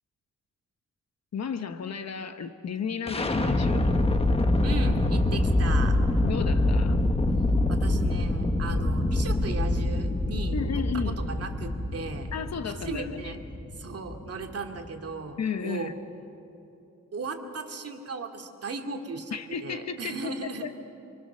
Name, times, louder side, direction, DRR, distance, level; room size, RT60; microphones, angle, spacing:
voice 1, 1.3-3.9 6.2-7.0 10.5-11.1 12.3-13.4 15.4-15.9 19.3-20.8, left 6 dB, 60° left, 9 dB, 1.2 m, -33 dB
sound 1, 3.1-14.9, left 2 dB, 20° left, 1.2 m, -25 dB
voice 2, 4.6-6.0 7.7-12.3 12.7-13.4 13.7-15.9 17.1-20.7, right 4 dB, 50° right, 3 dB, 2.4 m, -37 dB
28.0 x 25.5 x 6.8 m, 2.9 s
wide cardioid pair, 160°, 30 cm